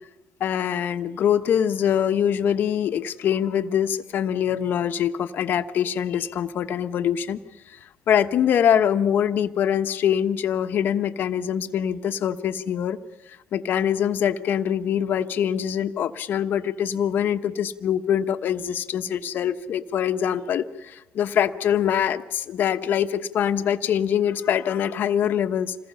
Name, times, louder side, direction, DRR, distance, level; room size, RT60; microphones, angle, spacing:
voice 1, 0.4-7.4 7.7-7.8 8.1-13.0 13.5-25.8, left 9 dB, 65° left, 9 dB, 1.1 m, -24 dB
27.0 x 19.5 x 5.7 m, 1.0 s
supercardioid pair, 70°, 4 cm